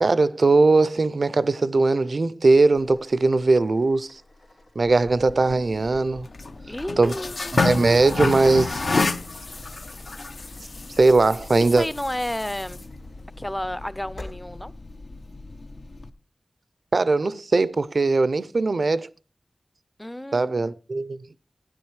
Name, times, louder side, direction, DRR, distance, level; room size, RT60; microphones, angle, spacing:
voice 1, 0.0-4.2 4.8-6.3 7.0-7.1 7.5-8.9 11.0-11.9 16.9-19.1 20.3-21.2, right 3 dB, 70° right, 0.4 m, -20 dB
sound 1, 2.7-14.4, left 2 dB, 90° left, 2.6 m, -49 dB
sound 2, 4.9-16.1, left 3 dB, 70° left, 0.6 m, -31 dB
voice 2, 6.7-7.6 11.7-12.8 13.4-14.7 20.0-20.6, left 1 dB, 15° left, 0.4 m, -31 dB
12.0 x 9.6 x 3.1 m
wide cardioid pair, 55°, 0 cm